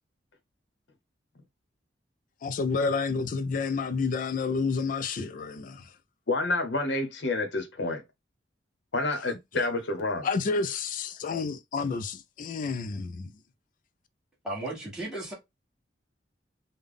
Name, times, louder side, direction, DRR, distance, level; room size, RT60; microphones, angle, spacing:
voice 1, 2.4-5.9 9.6-9.7 10.2-13.3, left 4 dB, 45° left, 0.3 m, -30 dB
voice 2, 6.3-8.0 8.9-10.3, left 2 dB, 70° left, 0.9 m, -28 dB
voice 3, 14.4-15.3, right 1 dB, 5° right, 1.2 m, -35 dB
3.4 x 2.2 x 3.5 m
head